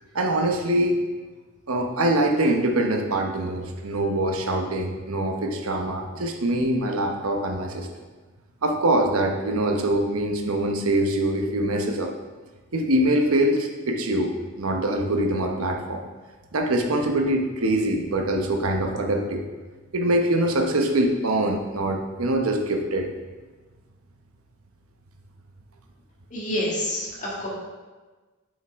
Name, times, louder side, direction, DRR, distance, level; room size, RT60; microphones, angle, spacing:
voice 1, 0.1-1.0 1.7-7.9 8.6-12.1 12.7-16.0 16.5-19.4 19.9-23.1, right 1 dB, 90° right, 3 dB, 0.9 m, -24 dB
voice 2, 26.3-27.5, left 1 dB, 35° left, -6 dB, 2.0 m, -28 dB
7.8 x 5.5 x 3.6 m, 1.3 s
head